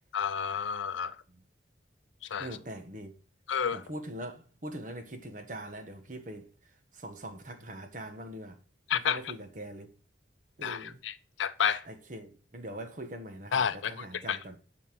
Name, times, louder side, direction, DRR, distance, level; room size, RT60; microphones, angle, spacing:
voice 1, 0.1-1.2 2.3-2.5 3.5-3.8 8.9-9.2 10.6-11.1 11.4-11.8 13.5-14.4, left 7 dB, 85° left, 0.5 m, -30 dB
voice 2, 2.4-3.2 3.7-6.5 6.9-8.6 8.9-9.9 10.6-11.0 11.9-14.6, right 1 dB, 45° right, 1.3 m, -42 dB
11.0 x 4.4 x 6.0 m
head